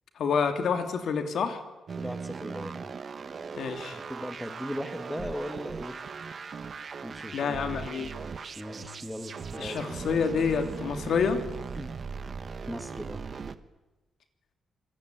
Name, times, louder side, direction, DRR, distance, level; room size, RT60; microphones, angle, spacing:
voice 1, 0.2-1.6 3.6-4.0 7.3-8.1 9.6-11.4, left 6 dB, 60° left, 7 dB, 3.1 m, -28 dB
sound 1, 1.9-13.6, right 5 dB, 40° right, 1.3 m, -39 dB
voice 2, 2.0-2.9 3.9-6.0 7.0-7.4 8.6-9.8 11.8-11.9 12.7-13.3, equal, ahead, 7 dB, 1.8 m, -38 dB
26.5 x 23.0 x 9.5 m, 1.0 s
wide cardioid pair, 155°, 0 cm